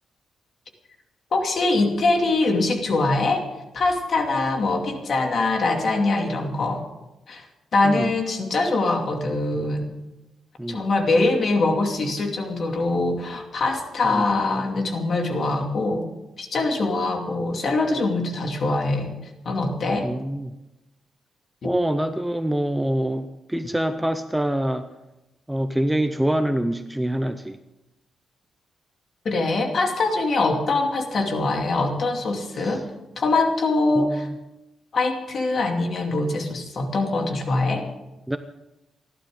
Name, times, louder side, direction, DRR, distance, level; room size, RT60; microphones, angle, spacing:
voice 1, 1.3-3.5 3.7-6.9 7.3-7.4 7.7-9.9 10.7-16.1 16.4-19.1 19.4-20.1 21.6-21.8 29.2-32.8 33.2-34.3 34.9-37.9, left 2 dB, 45° left, 3 dB, 2.6 m, -23 dB
voice 2, 10.6-10.9 14.1-14.3 20.0-20.5 21.6-24.9 25.5-27.6 32.5-32.8 34.0-34.3 38.3-38.4, right 1 dB, 5° right, 8 dB, 0.7 m, -25 dB
29.0 x 11.5 x 3.8 m, 0.98 s
wide cardioid pair, 155°, 0 cm